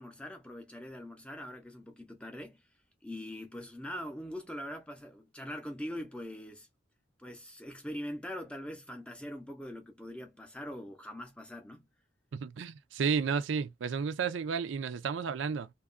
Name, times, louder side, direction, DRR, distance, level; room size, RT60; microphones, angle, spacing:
voice 1, 0.0-2.6 3.0-6.7 7.2-11.9, equal, 5° left, 0.5 m, -42 dB
voice 2, 12.3-15.7, right 6 dB, 80° right, 0.4 m, -32 dB
2.8 x 2.3 x 2.4 m
head